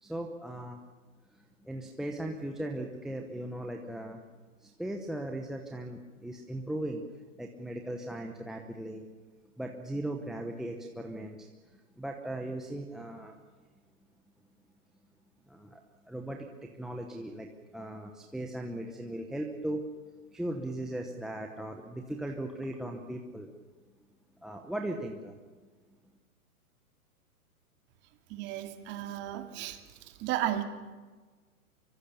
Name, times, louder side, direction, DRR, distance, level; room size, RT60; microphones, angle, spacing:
voice 1, 0.0-0.8 1.3-4.2 4.6-7.0 7.4-9.0 9.6-13.4 15.5-19.8 20.3-23.5 24.4-25.4, right 1 dB, ahead, 1 dB, 0.9 m, -38 dB
voice 2, 28.3-29.8 30.2-30.6, right 13 dB, 25° right, 7 dB, 2.3 m, -33 dB
25.0 x 24.0 x 7.0 m, 1.4 s
hypercardioid pair, 145°, 44 cm